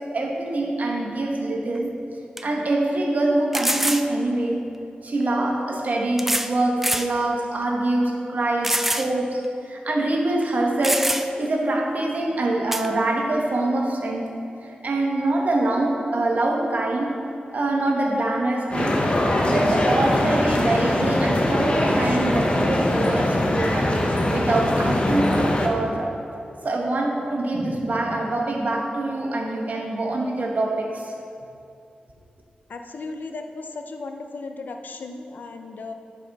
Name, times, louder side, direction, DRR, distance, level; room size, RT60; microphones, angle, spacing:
voice 1, 0.0-1.9 2.4-4.6 5.0-14.4 14.6-17.2 17.5-19.1 19.4-24.0 24.3-26.1 26.6-31.1, right 2 dB, 60° right, 0 dB, 1.2 m, -24 dB
sound 1, 1.8-1.9 2.4-2.5 3.5-4.1 5.2-5.3 6.2-6.5 6.8-7.1 7.6-7.7 8.6-9.1 9.4-9.5 10.4-10.5 10.8-11.5 12.7-12.9, right 1 dB, 5° right, 0.4 m, -24 dB
sound 2, 18.7-25.7, left 1 dB, 35° left, 0.9 m, -22 dB
voice 2, 32.7-35.9, left 3 dB, 75° left, 5 dB, 0.6 m, -36 dB
10.5 x 4.9 x 4.1 m, 2.6 s
wide cardioid pair, 75°, 3 cm